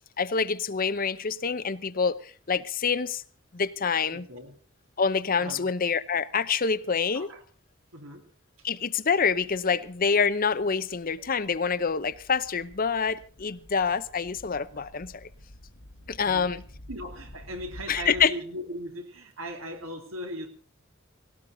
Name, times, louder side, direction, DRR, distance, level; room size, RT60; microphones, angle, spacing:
voice 1, 0.2-3.2 3.5-4.3 5.0-7.3 8.6-15.3 16.1-16.6 17.9-18.3, left 5 dB, 45° left, 0.8 m, -26 dB
voice 2, 4.1-4.6 5.4-5.7 7.1-7.4 7.9-8.2 9.7-9.8 14.8-14.9 16.2-16.5 16.9-20.5, equal, 80° right, 3.2 m, -38 dB
sound 1, 9.2-18.3, left 1 dB, 75° left, 1.7 m, -50 dB
18.5 x 17.5 x 3.9 m
head